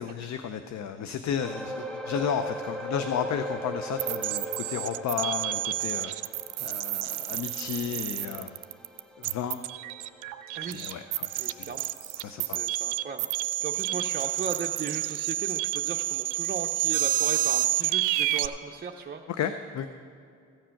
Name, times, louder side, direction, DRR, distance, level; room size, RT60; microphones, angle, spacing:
voice 1, 0.0-8.5 9.2-9.6 10.6-11.7 12.2-12.6 19.4-19.9, left 7 dB, 65° left, 9 dB, 0.6 m, -33 dB
sound 1, 1.4-14.1 14.4-14.6 15.2-15.3, equal, ahead, 0.8 m, -40 dB
sound 2, 4.0-18.5, right 16 dB, 85° right, 0.5 m, -29 dB
voice 2, 10.6-19.2, right 5 dB, 30° right, 1 dB, 0.6 m, -37 dB
14.5 x 7.6 x 5.8 m, 2.3 s
cardioid pair, 90°, 30 cm